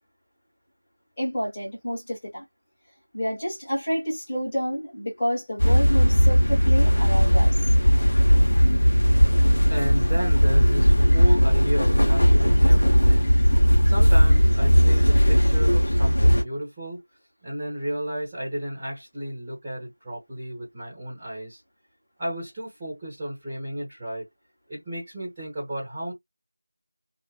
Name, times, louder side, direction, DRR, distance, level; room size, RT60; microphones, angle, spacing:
voice 1, 1.2-2.4 3.1-7.6, equal, 15° left, 1.3 m, -29 dB
sound 1, 5.6-16.4, equal, 45° left, 0.8 m, -18 dB
voice 2, 9.7-13.3 13.8-17.0 17.4-21.6 22.2-24.3 24.7-26.1, right 1 dB, 10° right, 1.2 m, -33 dB
2.4 x 2.4 x 2.2 m
figure-of-eight pair, 175°, 0 cm